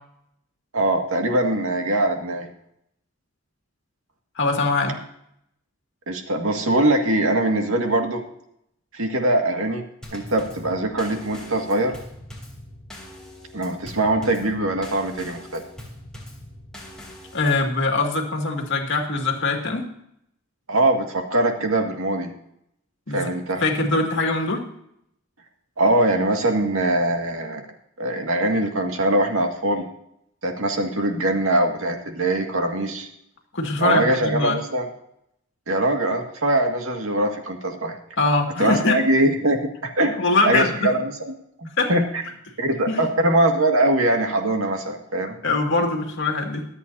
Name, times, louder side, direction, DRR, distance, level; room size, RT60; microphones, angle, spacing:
voice 1, 0.7-2.5 6.1-8.2 8.9-9.8 10.1-11.9 13.5-15.6 20.7-22.3 23.1-23.6 25.8-27.7 28.0-29.9 30.4-33.1 33.8-34.9 35.7-38.0 38.6-40.2 40.5-41.3 41.6-42.2 42.6-45.3, right 1 dB, 85° right, 3 dB, 2.1 m, -22 dB
voice 2, 4.4-5.0 17.3-19.9 23.1-23.3 23.6-24.6 33.5-34.6 38.2-39.0 40.1-40.7 41.8-41.9 42.9-43.1 45.4-46.7, left 3 dB, 60° left, 2 dB, 2.2 m, -22 dB
Drum kit / Snare drum / Bass drum, 10.0-17.7, left 1 dB, 5° left, 3.4 m, -41 dB
24.0 x 8.3 x 2.8 m, 0.75 s
head